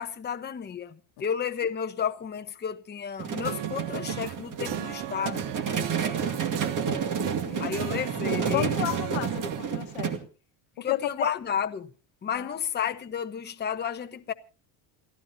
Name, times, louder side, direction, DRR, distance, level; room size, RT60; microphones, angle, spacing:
voice 1, 0.0-5.5 7.6-8.8 10.8-11.9 12.2-14.3, left 7 dB, 20° left, 1.0 m, -32 dB
sound 1, 3.2-10.2, right 6 dB, 40° right, 2.3 m, -30 dB
sound 2, 3.4-9.6, right 13 dB, 65° right, 1.2 m, -37 dB
voice 2, 7.4-8.0 8.5-10.1 10.8-11.3 12.3-12.6, left 16 dB, 75° left, 1.6 m, -33 dB
28.0 x 13.5 x 2.8 m
cardioid pair, 120°, 45 cm